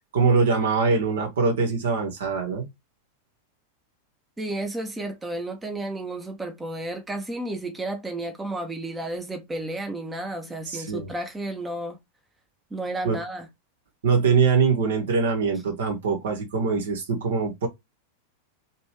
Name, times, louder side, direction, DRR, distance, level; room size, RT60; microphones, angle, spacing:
voice 1, 0.1-2.7 10.7-11.1 13.0-13.2 14.0-17.7, right 5 dB, 60° right, 1.3 m, -23 dB
voice 2, 4.4-12.0 12.7-13.5, right 1 dB, 10° right, 0.9 m, -32 dB
3.3 x 3.1 x 2.9 m
figure-of-eight pair, 90°, 0 cm